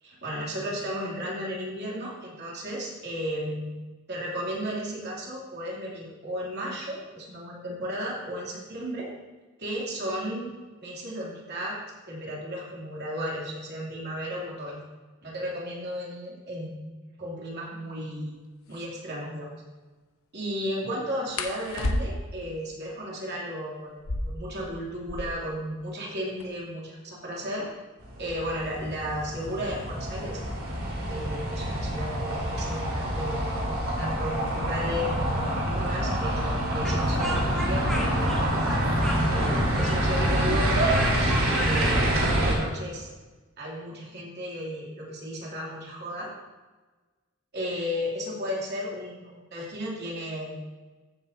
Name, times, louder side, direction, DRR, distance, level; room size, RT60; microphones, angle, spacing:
voice 1, 0.0-3.7 4.1-9.1 9.6-10.5 10.8-11.8 12.1-14.8 15.2-16.9 17.2-18.4 18.7-19.5 20.3-27.7 28.2-30.4 31.1-38.4 39.3-41.3 41.6-43.1 43.6-46.3 47.5-50.6, equal, 55° right, -4 dB, 2.9 m, -34 dB
sound 1, 18.2-18.3 18.6-18.9 21.3-22.4 23.9-25.5 25.8-25.9 26.1-26.7 27.4-29.9 30.9-31.2 31.6-32.1 32.4-33.2, left 1 dB, 85° left, 1.0 m, -34 dB
sound 2, 28.0-42.5, right 1 dB, 75° right, 2.6 m, -26 dB
Speech, 36.8-42.0, equal, ahead, 1.8 m, -34 dB
14.5 x 7.7 x 2.8 m, 1.3 s
head